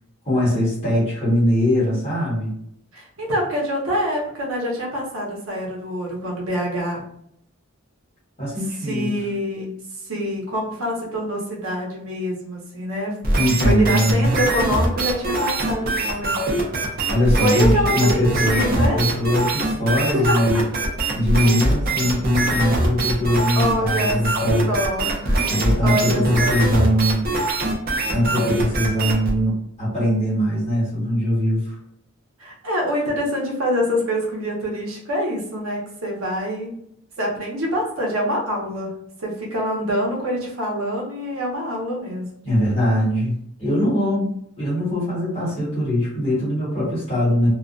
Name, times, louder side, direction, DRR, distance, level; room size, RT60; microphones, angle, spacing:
voice 1, 0.2-2.5 8.4-9.2 13.3-14.3 17.1-20.6 21.1-24.7 25.5-27.3 28.1-31.7 42.4-44.3 44.6-47.5, equal, 30° left, -9 dB, 1.3 m, -21 dB
voice 2, 2.9-7.0 8.5-9.7 10.0-13.1 13.6-17.1 17.4-19.0 20.1-20.6 21.4-21.8 23.5-24.2 24.7-26.6 32.4-36.7 37.2-42.3, equal, 75° right, -2 dB, 0.8 m, -25 dB
sound 1, 13.2-29.3, right 2 dB, 40° right, 0.5 m, -22 dB
2.3 x 2.1 x 2.5 m, 0.72 s
head